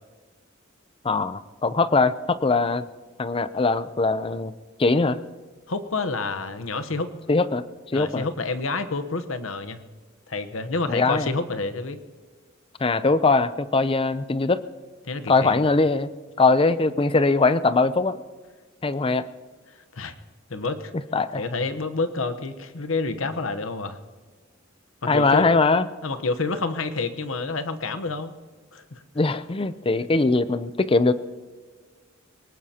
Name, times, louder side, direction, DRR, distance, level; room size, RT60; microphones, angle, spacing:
voice 1, 1.0-2.9 3.2-4.5 4.8-5.2 7.3-7.6 7.9-8.2 10.9-11.3 12.8-14.6 15.3-16.1 16.4-18.2 18.8-19.3 21.1-21.4 25.1-25.9 29.2-31.1, left 3 dB, 25° left, 14 dB, 0.5 m, -21 dB
voice 2, 5.7-7.1 7.9-9.9 10.3-12.0 15.0-15.6 19.9-20.1 20.5-20.9 21.3-24.0 25.0-25.5 26.0-28.3 28.7-29.0, left 3 dB, 75° left, 9 dB, 1.0 m, -28 dB
23.0 x 19.5 x 2.9 m, 1.4 s
head